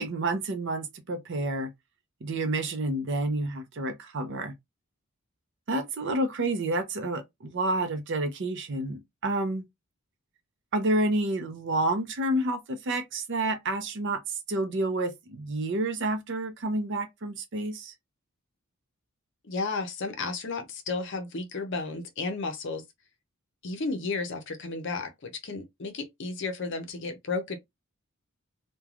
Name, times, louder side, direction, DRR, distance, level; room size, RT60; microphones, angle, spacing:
voice 1, 0.0-1.7 2.2-4.5 5.7-9.6 10.7-17.9, right 2 dB, 55° right, 0.6 m, -29 dB
voice 2, 19.4-22.8 23.6-27.6, left 3 dB, 55° left, 0.6 m, -33 dB
3.1 x 2.2 x 2.3 m
head